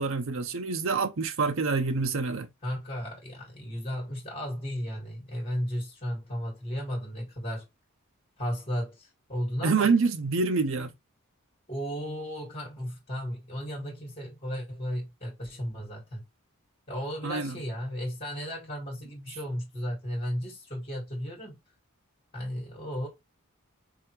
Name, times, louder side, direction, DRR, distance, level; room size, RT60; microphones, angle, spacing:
voice 1, 0.0-2.5 9.6-10.9 17.2-17.6, right 4 dB, 65° right, 0.7 m, -26 dB
voice 2, 2.6-7.7 8.4-9.9 11.7-16.2 16.9-21.6 22.3-23.1, equal, 30° left, 2.1 m, -34 dB
3.7 x 3.3 x 3.1 m
head